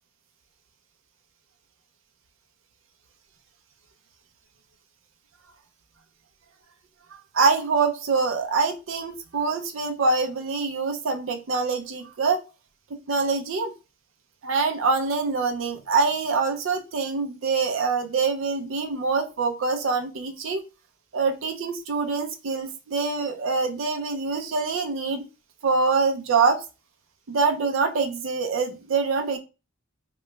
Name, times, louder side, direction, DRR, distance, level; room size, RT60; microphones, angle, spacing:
voice 1, 7.3-12.4 13.1-13.7 14.4-20.6 21.1-25.3 25.6-26.6 27.3-29.4, right 4 dB, 80° right, 4 dB, 0.5 m, -25 dB
3.0 x 2.3 x 3.0 m, 0.30 s
head